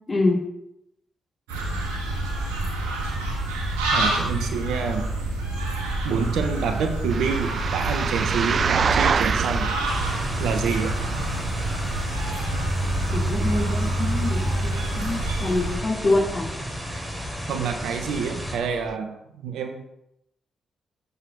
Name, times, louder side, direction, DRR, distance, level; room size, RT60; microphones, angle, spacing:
voice 1, 0.1-0.4 13.1-16.5, left 2 dB, 35° left, -1 dB, 4.2 m, -25 dB
sound 1, 1.5-15.8, right 2 dB, 90° right, 1.7 m, -27 dB
voice 2, 3.9-5.0 6.0-9.7 10.4-10.9 17.5-19.9, right 6 dB, 75° right, 6 dB, 1.1 m, -27 dB
sound 2, 7.1-18.9, right 6 dB, 55° right, 0.4 m, -30 dB
sound 3, 9.8-18.6, left 1 dB, 10° right, 4.0 m, -33 dB
8.0 x 5.5 x 6.3 m, 0.80 s
hypercardioid pair, 45°, 0 cm